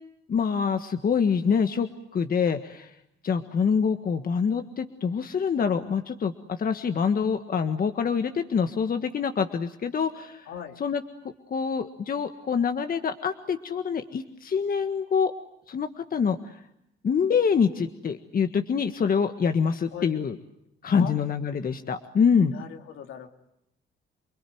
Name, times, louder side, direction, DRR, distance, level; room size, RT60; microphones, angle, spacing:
voice 1, 0.3-2.9 3.2-10.5 10.8-11.0 11.5-15.3 15.7-16.5 17.0-20.4 20.8-22.6, left 6 dB, 45° left, 7 dB, 1.6 m, -25 dB
voice 2, 10.5-10.8 19.9-20.1 20.9-21.2 22.5-23.3, left 8 dB, 85° left, 5 dB, 2.9 m, -39 dB
28.5 x 21.5 x 9.4 m, 0.81 s
cardioid pair, 90°, 20 cm